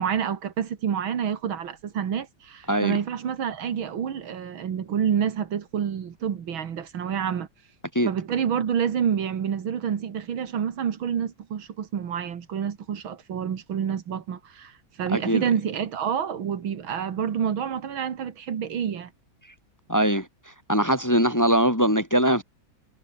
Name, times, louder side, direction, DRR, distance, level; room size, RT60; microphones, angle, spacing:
voice 1, 0.0-7.5 8.0-19.1, right 8 dB, 85° right, 2.5 m, -28 dB
voice 2, 2.7-3.0 7.9-8.1 15.1-15.4 19.9-20.3 20.7-22.4, right 1 dB, 10° left, 1.7 m, -21 dB
omnidirectional pair, 2.1 m